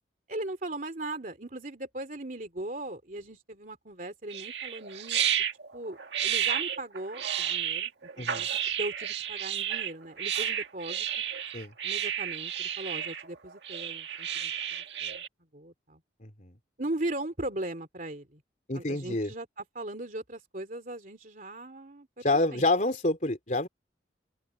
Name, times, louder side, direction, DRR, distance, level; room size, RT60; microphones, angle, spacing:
voice 1, 0.3-5.2 5.7-11.1 11.8-15.2 15.5-16.0 16.8-18.4 18.7-22.2 22.5-22.7, right 1 dB, 45° right, 3.1 m, -38 dB
sound 1, 4.3-15.3, right 9 dB, 70° right, 1.9 m, -32 dB
voice 2, 8.2-8.5 11.5-11.7 16.2-16.6 18.7-19.3 22.2-23.7, left 2 dB, 40° left, 3.5 m, -28 dB
open air
head